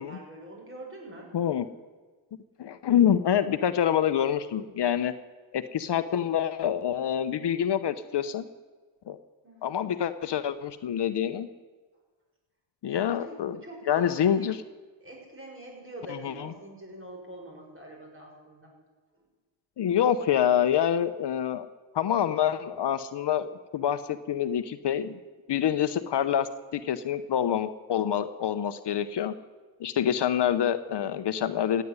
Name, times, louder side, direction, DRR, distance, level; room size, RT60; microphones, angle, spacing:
voice 1, 0.0-1.3 5.8-5.9 9.4-9.8 12.8-14.5 15.0-18.7, right 1 dB, 25° right, 0 dB, 6.1 m, -44 dB
voice 2, 1.3-1.7 2.6-5.1 5.5-8.4 9.1-9.2 9.6-11.5 12.8-13.6 13.9-14.6 16.1-16.5 19.8-21.7 21.9-25.2 25.5-29.3 29.8-31.8, left 9 dB, 60° left, 11 dB, 0.9 m, -26 dB
15.5 x 9.4 x 9.6 m, 1.3 s
cardioid pair, 90°, 47 cm